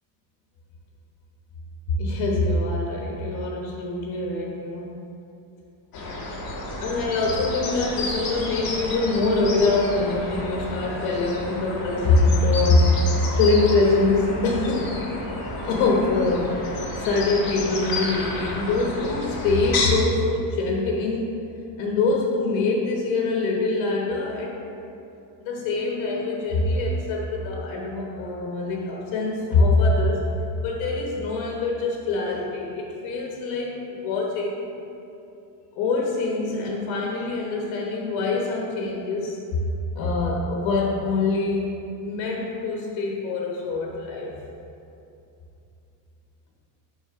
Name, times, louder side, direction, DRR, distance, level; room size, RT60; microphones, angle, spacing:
voice 1, 1.9-4.9 6.8-13.1 13.4-15.0 15.7-16.6 16.9-21.4 21.8-24.6 25.4-30.2 30.6-34.7 35.7-39.4 39.9-41.7 42.0-44.3, left 3 dB, 85° left, -1 dB, 1.3 m, -24 dB
sound 1, 5.9-19.9, left 2 dB, 50° left, 1.5 m, -31 dB
11.5 x 4.1 x 3.6 m, 2.8 s
cardioid pair, 140°, 46 cm